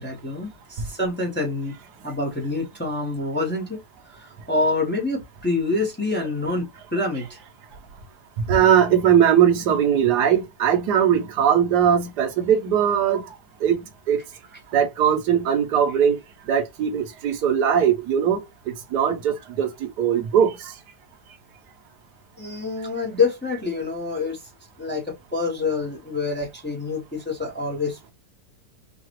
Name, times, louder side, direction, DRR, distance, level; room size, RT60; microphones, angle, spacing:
voice 1, 0.0-1.8 2.0-3.8 4.1-7.4 22.4-24.4 24.8-28.1, left 3 dB, 10° left, 0.8 m, -26 dB
voice 2, 8.5-13.3 13.6-14.2 14.7-16.2 16.5-18.4 18.9-20.7, right 8 dB, 70° right, 1.4 m, -20 dB
4.7 x 2.4 x 3.1 m
omnidirectional pair, 1.9 m